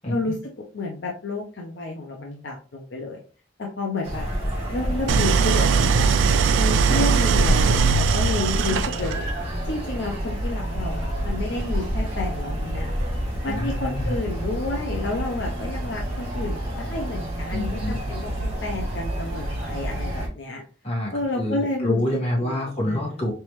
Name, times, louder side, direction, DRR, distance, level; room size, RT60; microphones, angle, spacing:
voice 1, 0.7-3.2 3.6-4.3 4.7-6.2 6.6-9.2 9.7-13.0 13.4-20.6 21.1-22.0 22.4-22.5 22.8-23.2, left 2 dB, 65° left, 0 dB, 0.6 m, -30 dB
sound 1, 4.0-20.3, equal, 35° right, 2.0 m, -28 dB
Idling, 5.1-9.3, right 6 dB, 80° right, 0.3 m, -20 dB
voice 2, 13.5-14.2 17.5-18.0 20.8-23.3, left 1 dB, 30° left, -4 dB, 1.6 m, -27 dB
4.1 x 3.3 x 3.1 m, 0.38 s
head